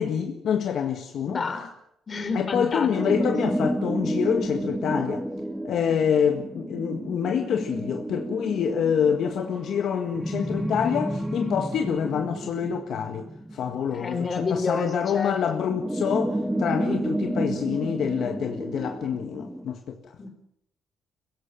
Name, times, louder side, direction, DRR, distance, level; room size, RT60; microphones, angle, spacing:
voice 1, 0.0-1.4 2.3-5.2 5.6-20.3, left 7 dB, 70° left, 1.7 m, -26 dB
voice 2, 1.2-1.7 2.1-3.1 13.9-15.6 20.2-20.3, left 4 dB, 40° left, 3.5 m, -29 dB
sound 1, 2.9-14.8 15.6-19.6, right 1 dB, 5° right, 1.6 m, -31 dB
23.5 x 16.0 x 7.5 m
cardioid pair, 90°, 0 cm